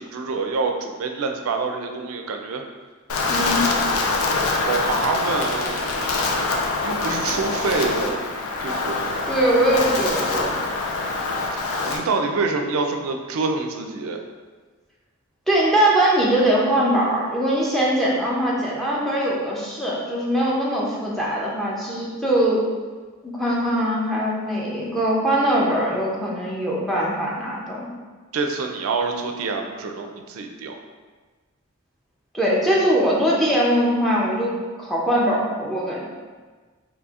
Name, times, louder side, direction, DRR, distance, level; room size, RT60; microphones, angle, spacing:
voice 1, 0.0-2.6 4.5-6.1 6.8-8.2 8.6-9.1 11.5-14.2 28.3-30.8, right 4 dB, 75° right, 4 dB, 0.3 m, -26 dB
Wind, 3.1-12.0, left 3 dB, 85° left, 0.4 m, -24 dB
voice 2, 3.3-3.6 9.3-10.5 15.5-22.6 23.2-27.8 32.3-36.1, right 1 dB, ahead, -5 dB, 0.5 m, -21 dB
4.1 x 2.7 x 2.4 m, 1.4 s
head